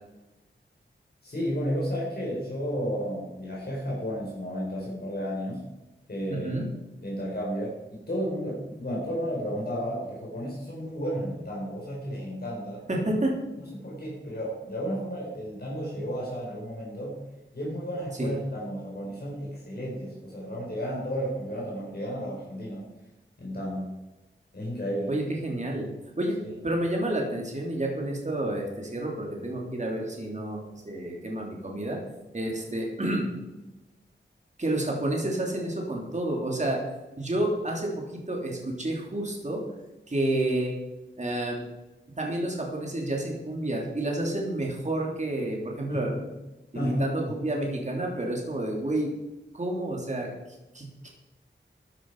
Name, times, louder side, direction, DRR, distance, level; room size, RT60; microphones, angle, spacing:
voice 1, 1.2-5.6 6.1-6.6 7.0-12.8 13.6-17.2 17.5-22.9 23.4-23.9 24.5-25.1 45.9-46.0 46.7-47.4, equal, 50° left, -4 dB, 4.5 m, -32 dB
voice 2, 6.3-6.6 12.9-13.3 18.2-18.3 25.1-25.9 26.2-26.4 26.6-32.0 32.3-33.3 34.6-36.8 37.2-39.6 40.1-40.7 41.2-41.6 42.2-46.1 46.7-49.1 49.5-50.3 50.7-51.1, right 1 dB, 35° right, -1 dB, 3.2 m, -29 dB
14.0 x 10.0 x 4.8 m, 1.0 s
wide cardioid pair, 95°, 20 cm